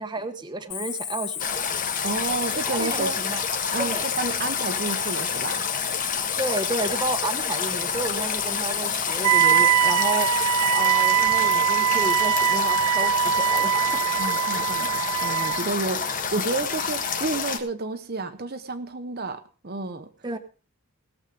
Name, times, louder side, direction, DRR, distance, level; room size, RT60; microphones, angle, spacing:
voice 1, 0.0-1.5 2.7-4.0 6.4-13.7 20.2-20.4, right 2 dB, 20° right, 8 dB, 1.1 m, -31 dB
Cricket, 0.7-10.8, left 9 dB, 85° left, 2.7 m, -33 dB
sound 1, 1.4-17.6, left 6 dB, 40° left, 1.5 m, -29 dB
voice 2, 2.0-3.2 3.7-5.7 14.2-20.1, right 3 dB, 45° right, 8 dB, 1.0 m, -30 dB
Wind instrument woodwind instrument, 9.2-15.7, right 9 dB, 85° right, 0.5 m, -22 dB
18.0 x 7.4 x 5.3 m, 0.36 s
head